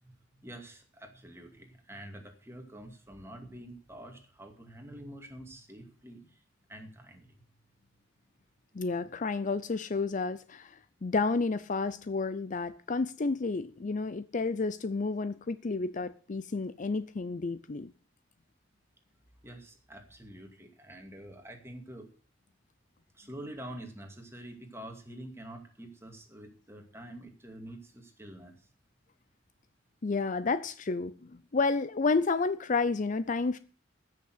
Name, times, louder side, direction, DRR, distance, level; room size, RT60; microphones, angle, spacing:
voice 1, 0.0-6.4 6.7-7.3 19.4-22.1 23.1-28.7, right 1 dB, 15° right, 2.3 m, -47 dB
voice 2, 8.7-17.9 30.0-33.6, left 4 dB, 40° left, 0.5 m, -31 dB
14.0 x 6.7 x 7.9 m
head